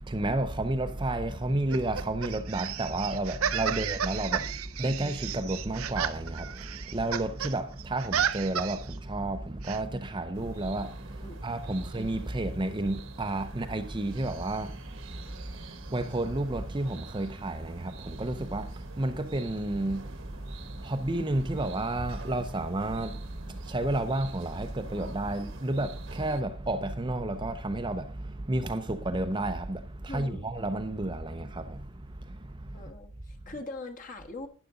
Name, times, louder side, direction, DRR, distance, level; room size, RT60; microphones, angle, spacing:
voice 1, 0.0-4.5 4.8-31.9 32.2-32.9, right 2 dB, 20° right, 0.6 m, -31 dB
sound 1, 1.7-7.5 7.8-8.9 9.6-9.8, right 8 dB, 80° right, 0.6 m, -33 dB
voice 2, 4.3-5.0 11.2-11.9 30.1-30.5 32.7-34.5, left 2 dB, 40° left, 1.5 m, -43 dB
sound 2, 10.3-26.4, right 3 dB, 65° right, 1.3 m, -48 dB
12.0 x 9.9 x 3.8 m
head